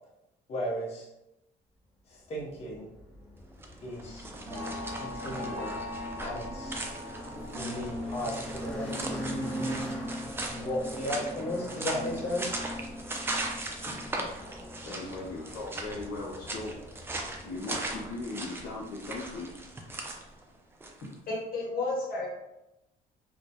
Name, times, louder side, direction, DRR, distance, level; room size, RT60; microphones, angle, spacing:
voice 1, 0.5-1.1 2.1-2.9 3.8-4.2 5.0-5.7 6.2-6.8 7.6-9.2 10.5-12.6, left 1 dB, 40° left, -4 dB, 0.7 m, -35 dB
sound 1, 2.3-19.8, equal, 5° left, 0.9 m, -42 dB
sound 2, 3.5-21.1, right 2 dB, 15° right, 0.3 m, -39 dB
sound 3, 4.0-16.2 16.5-18.1 18.5-18.8 19.2-19.3, left 1 dB, 60° right, 0.8 m, -42 dB
voice 2, 14.8-17.1 17.4-19.5, left 2 dB, 75° left, -4 dB, 0.5 m, -39 dB
voice 3, 21.3-22.3, left 2 dB, 60° left, -3 dB, 1.0 m, -32 dB
2.2 x 2.1 x 2.7 m, 0.90 s
cardioid pair, 110°, 17 cm